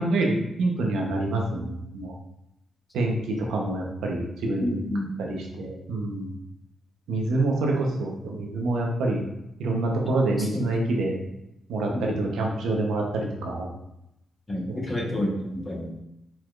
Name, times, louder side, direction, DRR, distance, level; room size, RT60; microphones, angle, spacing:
voice 1, 0.0-2.1 2.9-4.8 5.2-6.3 7.1-9.2 9.6-11.2 11.7-13.7 14.7-15.1, right 2 dB, 85° right, 0 dB, 0.8 m, -27 dB
voice 2, 4.6-5.1 10.4-10.6 11.9-12.1 14.5-15.9, left 1 dB, 25° left, -1 dB, 1.2 m, -29 dB
4.6 x 4.2 x 2.5 m, 0.84 s
cardioid pair, 65°, 0 cm